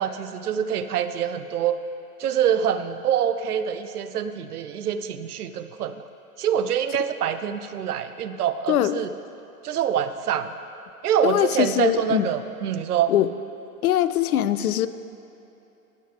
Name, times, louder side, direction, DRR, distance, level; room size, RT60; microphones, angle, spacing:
voice 1, 0.0-1.8 2.2-6.0 6.4-9.1 9.6-10.5 11.0-13.1, right 9 dB, 75° right, 10 dB, 0.7 m, -25 dB
voice 2, 8.7-9.0 11.2-12.3 13.1-13.3 13.8-14.9, left 12 dB, 70° left, 13 dB, 0.6 m, -22 dB
18.5 x 6.7 x 3.2 m, 3.0 s
hypercardioid pair, 110°, 46 cm